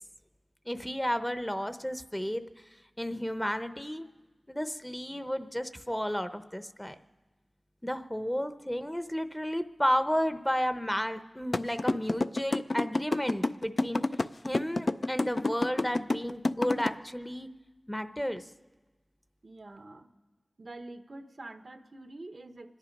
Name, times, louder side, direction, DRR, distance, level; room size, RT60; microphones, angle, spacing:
voice 1, 0.7-2.4 3.0-4.1 4.5-6.9 7.8-14.0 14.4-17.5 17.9-18.4, equal, 10° left, 9 dB, 0.7 m, -32 dB
sound 1, 11.5-16.9, left 2 dB, 55° left, 0.4 m, -27 dB
voice 2, 19.4-20.1 20.6-22.8, right 2 dB, 65° right, 8 dB, 0.9 m, -46 dB
25.5 x 10.5 x 5.2 m, 1.2 s
wide cardioid pair, 55°, 0 cm